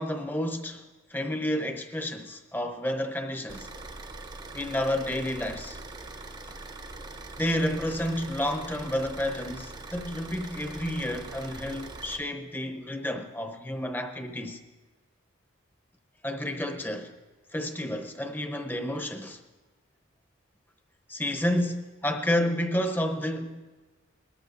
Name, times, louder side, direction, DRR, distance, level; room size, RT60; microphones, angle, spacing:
voice 1, 0.0-3.7 4.5-5.8 7.3-14.6 16.2-17.1 17.5-19.4 21.1-23.7, left 1 dB, 10° left, 0.8 m, -30 dB
Car / Idling, 3.5-12.2, right 2 dB, 20° right, 0.7 m, -42 dB
20.0 x 13.0 x 2.6 m
head